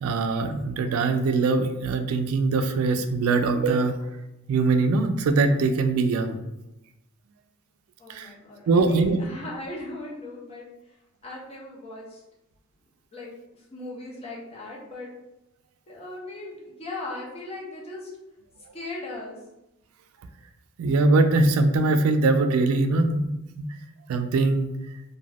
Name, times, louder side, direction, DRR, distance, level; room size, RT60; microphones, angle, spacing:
voice 1, 0.0-4.0 4.5-6.4 8.1-8.3 8.7-9.2 20.8-23.3 23.6-23.7 24.1-24.8, right 3 dB, 90° right, 8 dB, 0.3 m, -22 dB
voice 2, 8.0-11.0 11.2-12.2 13.1-15.1 15.9-18.1 18.7-19.4, left 2 dB, 30° left, -4 dB, 0.7 m, -38 dB
2.3 x 2.2 x 3.3 m, 0.93 s
head